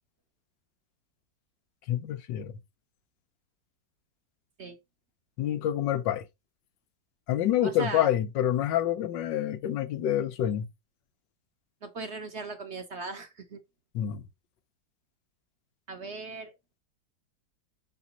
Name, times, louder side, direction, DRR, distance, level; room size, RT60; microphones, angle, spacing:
voice 1, 1.9-2.5 5.4-6.2 7.3-10.7 13.9-14.2, left 11 dB, 90° left, 1.5 m, -27 dB
voice 2, 7.6-8.1 11.8-13.6 15.9-16.5, right 3 dB, 45° right, 1.1 m, -38 dB
6.1 x 4.9 x 4.0 m
omnidirectional pair, 1.9 m